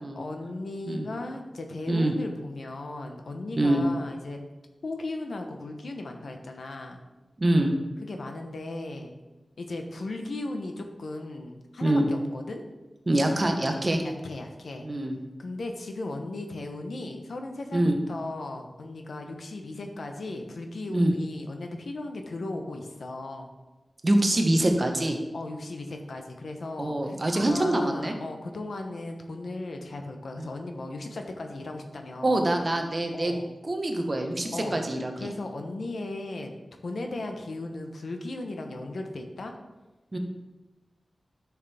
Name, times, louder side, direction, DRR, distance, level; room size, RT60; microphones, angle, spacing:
voice 1, 0.2-4.4 4.8-7.0 8.0-9.1 9.6-12.6 14.0-14.9 15.4-23.5 25.3-32.4 33.1-33.5 34.5-34.8 35.2-36.5 36.8-39.5, left 2 dB, 75° left, 4 dB, 1.0 m, -36 dB
voice 2, 7.4-7.7 11.8-12.1 13.1-14.0 14.8-15.2 17.7-18.0 20.9-21.1 24.0-25.2 26.8-28.1 30.4-30.5 32.2-33.3 33.6-35.3 40.1-40.2, right 1 dB, 35° right, 4 dB, 1.1 m, -25 dB
11.0 x 6.4 x 3.5 m, 1.1 s
wide cardioid pair, 110°, 0 cm